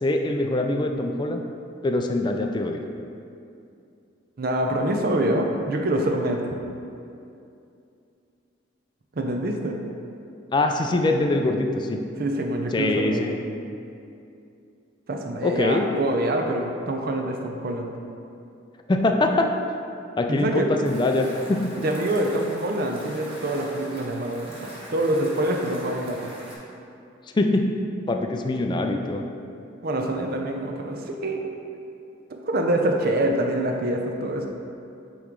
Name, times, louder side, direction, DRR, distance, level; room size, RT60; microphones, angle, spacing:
voice 1, 0.0-1.4 1.8-2.8 10.5-12.0 12.7-13.4 15.4-15.9 18.9-19.5 20.2-21.8 27.3-27.6 28.1-29.2, left 2 dB, 25° left, 4 dB, 0.3 m, -23 dB
voice 2, 4.4-6.6 9.1-9.8 12.2-13.3 15.1-18.0 20.3-20.7 21.8-26.3 29.8-31.5 32.3-34.5, right 1 dB, 50° right, 2 dB, 0.6 m, -25 dB
sound 1, 20.8-26.6, equal, 30° right, 1.1 m, -42 dB
8.5 x 3.1 x 3.6 m, 2.6 s
head